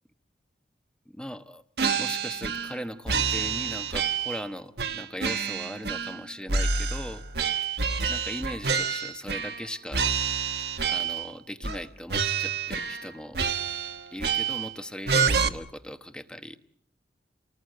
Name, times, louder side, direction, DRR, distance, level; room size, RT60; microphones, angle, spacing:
voice 1, 1.1-1.6 2.0-7.2 8.1-10.1 10.9-13.4 14.1-16.6, equal, 5° left, 8 dB, 1.2 m, -39 dB
sound 1, 1.8-2.8 3.1-4.4 4.8-6.2 6.5-9.7 9.9-11.3 11.6-11.8 12.1-13.1 13.3-14.7 15.1-15.5, right 6 dB, 65° right, 1.4 m, -28 dB
30.0 x 19.5 x 7.9 m, 0.66 s
head